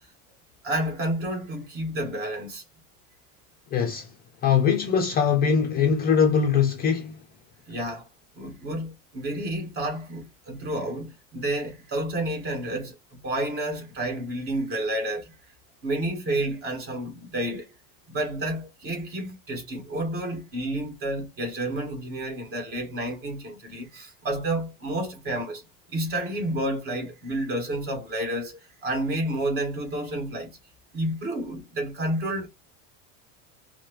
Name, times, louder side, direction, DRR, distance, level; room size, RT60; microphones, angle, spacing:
voice 1, 0.6-2.6 7.7-8.1 8.4-13.0 13.2-15.3 15.8-17.7 18.1-25.6 25.9-30.6 30.9-32.5, right 1 dB, 35° right, 1.9 m, -30 dB
voice 2, 3.7-4.1 4.4-7.2, left 6 dB, 25° left, 0.5 m, -22 dB
4.5 x 2.2 x 3.1 m
supercardioid pair, 150°, 38 cm